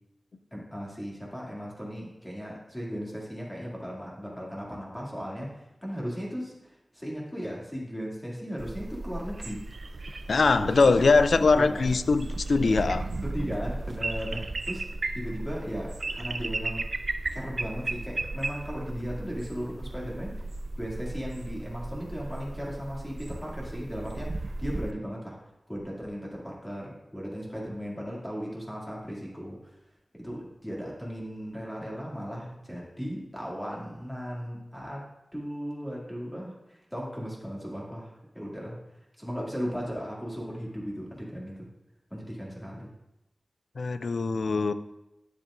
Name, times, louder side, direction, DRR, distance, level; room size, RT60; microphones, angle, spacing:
voice 1, 0.5-9.7 10.5-11.9 12.5-12.9 13.2-14.9 15.1-16.9 17.3-20.5 20.8-25.4 25.7-29.6 30.1-38.8 39.2-41.7 42.1-42.9, equal, 10° left, -4 dB, 2.4 m, -37 dB
sound 1, 8.6-24.9, right 2 dB, 65° right, 0.4 m, -35 dB
voice 2, 10.3-13.0 43.8-44.7, left 4 dB, 85° left, 12 dB, 0.3 m, -22 dB
10.0 x 7.4 x 2.5 m, 0.92 s
wide cardioid pair, 85°, 0 cm